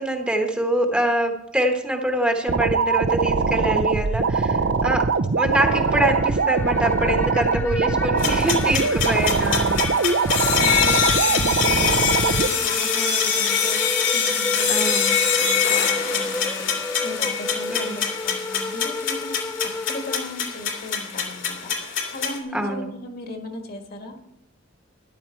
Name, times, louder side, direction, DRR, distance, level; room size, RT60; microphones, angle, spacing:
voice 1, 0.0-5.1 5.4-9.8 14.7-15.1 17.7-18.0 22.5-22.9, right 1 dB, 5° right, 3 dB, 1.1 m, -24 dB
sound 1, 2.5-12.5, right 4 dB, 65° right, 0.6 m, -22 dB
voice 2, 3.6-3.9 9.0-9.4 10.2-19.4 19.6-24.1, left 1 dB, 50° left, 4 dB, 1.6 m, -37 dB
sound 2, 5.6-20.9, left 2 dB, 10° left, 0.4 m, -33 dB
sound 3, 8.2-22.4, left 7 dB, 70° left, 2.4 m, -24 dB
13.5 x 10.5 x 4.5 m, 0.82 s
head